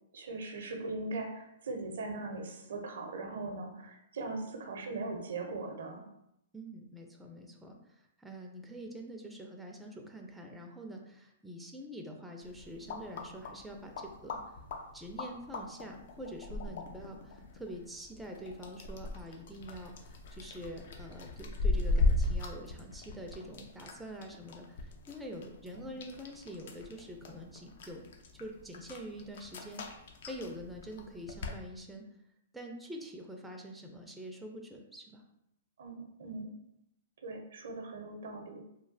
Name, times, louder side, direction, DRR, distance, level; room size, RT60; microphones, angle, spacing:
voice 1, 0.1-6.0 25.7-25.9 35.8-36.6 37.2-38.6, right 3 dB, 75° right, 3 dB, 0.5 m, -40 dB
voice 2, 6.5-14.4 14.9-28.1 28.4-29.8 30.3-32.1 32.5-35.2, equal, 5° right, 1 dB, 0.4 m, -45 dB
sound 1, 12.4-31.6, left 2 dB, 60° left, 0.4 m, -38 dB
3.1 x 2.3 x 2.5 m, 0.81 s
hypercardioid pair, 130°, 0 cm